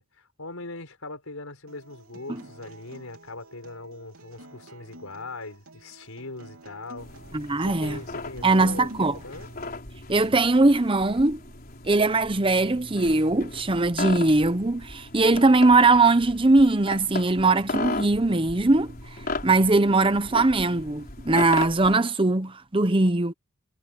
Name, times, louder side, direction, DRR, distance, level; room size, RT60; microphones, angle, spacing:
voice 1, 0.0-7.1 7.6-9.5, left 2 dB, 80° left, 4.7 m, -40 dB
Acoustic guitar, 1.7-9.7, right 2 dB, 80° right, 3.4 m, -50 dB
sound 1, 7.0-21.9, left 3 dB, 45° left, 4.6 m, -37 dB
voice 2, 7.3-8.0 8.4-9.2 10.1-11.4 11.8-19.0 19.4-23.3, right 2 dB, 25° right, 0.8 m, -20 dB
head